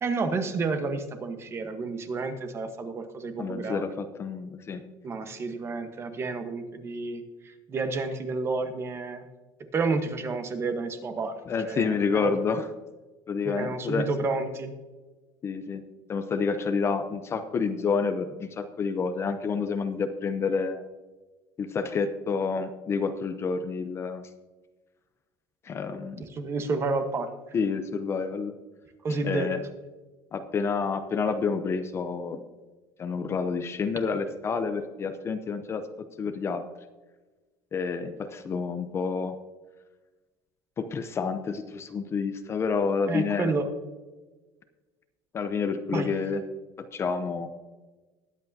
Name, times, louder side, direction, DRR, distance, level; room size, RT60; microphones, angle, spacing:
voice 1, 0.0-3.8 5.0-9.3 9.7-11.4 11.7-11.9 12.1-12.3 13.4-14.7 26.3-27.3 29.0-29.5 43.1-43.7 45.9-46.1, right 3 dB, 25° right, 8 dB, 1.1 m, -30 dB
voice 2, 3.4-4.8 11.5-12.7 13.3-14.1 15.4-15.8 16.1-20.8 21.6-24.3 25.6-26.2 27.5-28.5 29.1-29.6 30.3-32.4 33.0-35.8 36.2-36.6 37.7-39.4 40.8-43.5 45.3-46.4 46.8-47.5, left 5 dB, 25° left, 8 dB, 0.6 m, -29 dB
21.0 x 8.2 x 2.7 m, 1.3 s
cardioid pair, 160°, 10 cm